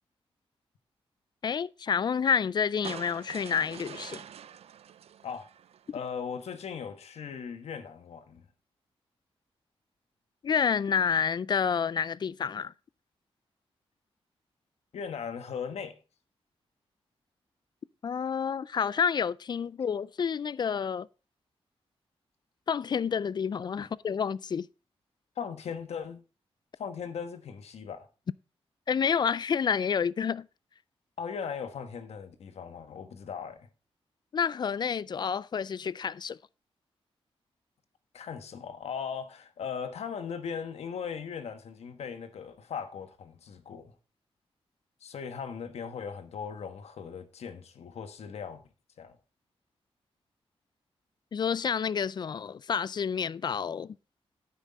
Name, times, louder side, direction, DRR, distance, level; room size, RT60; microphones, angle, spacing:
voice 1, 1.4-4.2 10.4-12.7 18.0-21.1 22.7-24.7 28.9-30.5 34.3-36.4 51.3-54.0, left 7 dB, 45° left, 0.4 m, -29 dB
sound 1, 2.8-6.1, right 9 dB, 75° right, 0.4 m, -45 dB
voice 2, 5.9-8.4 14.9-16.0 23.8-23.9 25.4-26.2 26.8-28.1 31.2-33.7 38.1-43.9 45.0-48.7 49.0-49.2, left 6 dB, 85° left, 1.2 m, -38 dB
9.7 x 8.4 x 3.4 m
wide cardioid pair, 120°, 11 cm